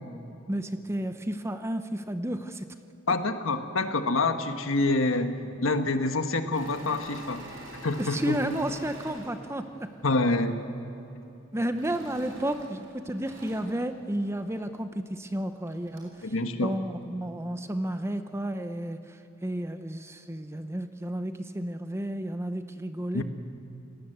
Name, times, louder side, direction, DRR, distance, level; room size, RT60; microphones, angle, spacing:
voice 1, 0.5-2.7 8.0-9.9 11.5-16.3 16.6-23.2, right 1 dB, 15° right, 9 dB, 0.8 m, -32 dB
voice 2, 3.1-7.4 7.8-8.4 10.0-10.6 16.2-16.7 23.1-23.2, left 2 dB, 75° left, 8 dB, 1.5 m, -27 dB
Engine / Mechanisms, 6.5-10.3 11.7-14.6 15.3-15.4 15.7-16.2, right 1 dB, 70° right, 5.6 m, -46 dB
29.0 x 18.5 x 8.0 m, 2.9 s
head